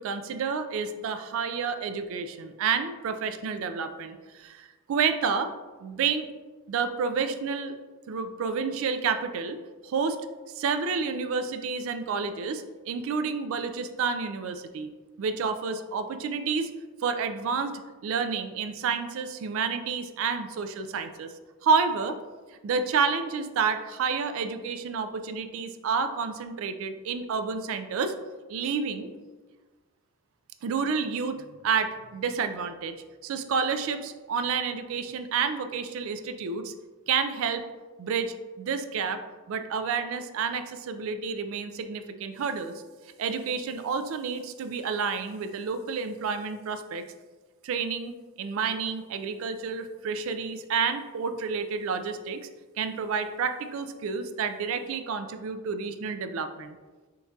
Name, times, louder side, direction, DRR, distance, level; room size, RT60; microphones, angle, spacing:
voice 1, 0.0-5.5 5.8-6.3 6.7-7.8 8.1-10.2 10.5-14.9 15.2-16.7 17.0-21.3 21.6-22.2 22.6-28.2 28.5-29.1 30.6-32.9 33.2-36.7 37.1-37.6 38.0-39.2 39.5-42.7 43.2-47.0 47.6-52.5 52.8-56.8, right 5 dB, 65° right, 9 dB, 0.3 m, -29 dB
5.3 x 2.3 x 2.6 m, 1.3 s
head